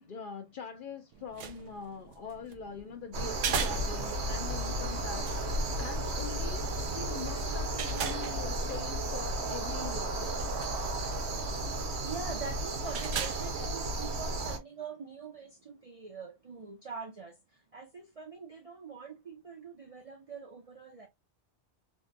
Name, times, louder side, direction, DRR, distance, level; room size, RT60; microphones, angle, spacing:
voice 1, 0.0-10.5, left 6 dB, 55° left, 0.6 m, -43 dB
sound 1, 1.1-14.6, right 6 dB, 90° right, 0.9 m, -41 dB
sound 2, 3.1-14.6, right 1 dB, 65° right, 1.0 m, -34 dB
voice 2, 12.0-17.3 17.7-21.1, right 5 dB, 45° right, 0.5 m, -44 dB
3.5 x 2.1 x 2.5 m
omnidirectional pair, 1.2 m